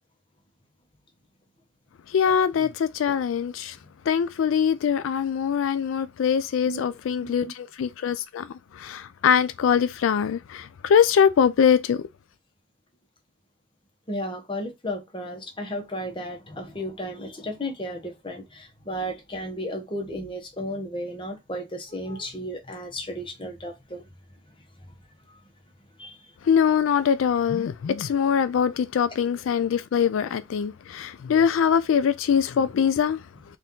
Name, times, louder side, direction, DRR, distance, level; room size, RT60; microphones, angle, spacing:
voice 1, 2.1-3.8 4.1-12.1 26.4-33.2, left 7 dB, 90° left, 0.3 m, -23 dB
voice 2, 14.1-24.0 25.3-25.4 26.0-26.2 28.6-28.7, equal, 25° left, 1.0 m, -34 dB
4.2 x 2.5 x 3.7 m
head